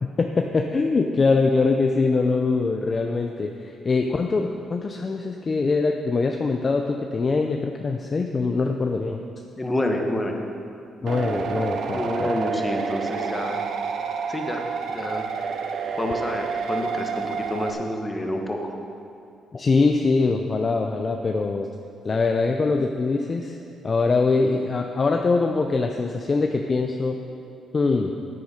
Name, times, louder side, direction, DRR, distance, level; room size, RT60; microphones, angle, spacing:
voice 1, 0.0-9.2 11.0-12.3 19.5-21.7 22.0-23.6 23.8-27.2 27.7-28.1, left 3 dB, 30° left, 3 dB, 0.5 m, -23 dB
voice 2, 9.6-10.4 11.9-13.6 14.3-14.7 14.9-15.3 16.0-18.7, left 1 dB, 15° left, 2 dB, 1.3 m, -28 dB
sound 1, 11.1-17.7, right 6 dB, 65° right, 0.8 m, -29 dB
9.7 x 9.2 x 5.1 m, 2.6 s
cardioid pair, 110°, 0 cm